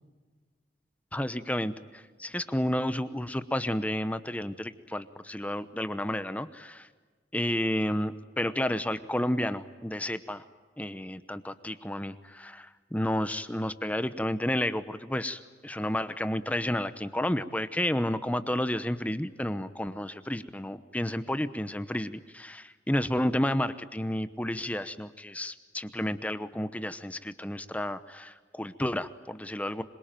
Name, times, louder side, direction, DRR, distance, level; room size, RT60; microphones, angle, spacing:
voice 1, 1.1-6.9 7.3-10.4 10.8-29.8, left 1 dB, 10° left, 12 dB, 0.9 m, -31 dB
26.0 x 23.0 x 9.1 m, 1.4 s
head